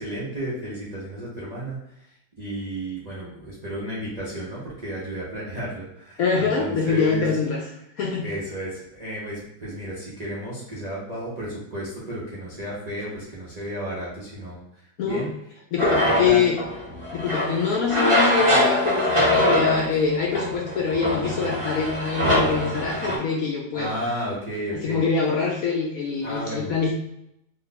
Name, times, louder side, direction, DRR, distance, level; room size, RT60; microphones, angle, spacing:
voice 1, 0.0-7.4 8.2-15.3 16.1-16.4 23.7-25.0 26.2-26.8, right 1 dB, 65° right, -7 dB, 0.4 m, -33 dB
voice 2, 6.2-7.6 8.0-8.3 15.0-15.2 15.7-16.6 17.1-24.0 24.8-26.9, left 5 dB, 70° left, -1 dB, 0.8 m, -24 dB
sound 1, 15.8-23.2, left 1 dB, 25° right, 0.7 m, -23 dB
3.0 x 2.2 x 3.9 m, 0.80 s
omnidirectional pair, 1.9 m